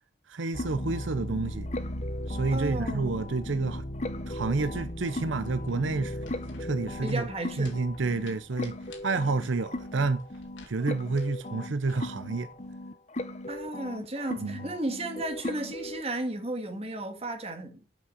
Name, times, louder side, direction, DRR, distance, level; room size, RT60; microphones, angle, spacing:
voice 1, 0.3-1.7 2.3-3.8 4.3-6.2 6.6-7.3 7.6-8.8 9.0-10.2 10.7-12.5 14.4-14.7, right 3 dB, 80° right, 0.7 m, -29 dB
sound 1, 0.5-16.0, left 1 dB, 35° left, 1.0 m, -37 dB
voice 2, 2.5-3.2 7.0-7.7 13.5-17.9, right 1 dB, 30° right, 1.9 m, -34 dB
sound 2, 5.4-12.8, left 2 dB, 80° left, 3.2 m, -55 dB
8.4 x 6.2 x 7.8 m
head